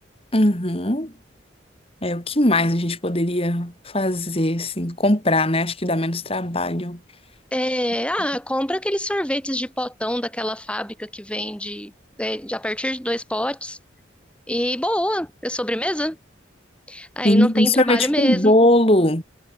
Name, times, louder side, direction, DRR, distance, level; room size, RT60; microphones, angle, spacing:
voice 1, 0.3-1.1 2.0-7.0 17.2-19.2, left 1 dB, 30° left, 3.7 m, -20 dB
voice 2, 7.5-11.9 12.2-13.8 14.5-16.2 16.9-18.5, left 1 dB, 5° left, 6.0 m, -26 dB
head